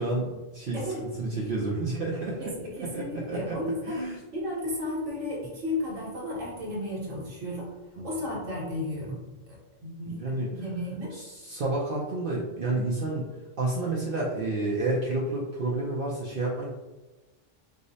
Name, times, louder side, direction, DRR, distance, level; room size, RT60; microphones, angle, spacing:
voice 1, 0.0-0.8 1.2-2.5 2.8-3.6 3.9-4.2 8.0-8.1 10.1-10.5 11.1-13.3 13.6-16.7, right 2 dB, 60° right, -4 dB, 0.6 m, -30 dB
voice 2, 0.7-1.1 2.4-7.7 8.0-9.2 9.5-10.2 10.5-11.1, left 1 dB, 80° right, -5 dB, 1.5 m, -33 dB
4.8 x 2.0 x 2.6 m, 1.1 s
omnidirectional pair, 1.3 m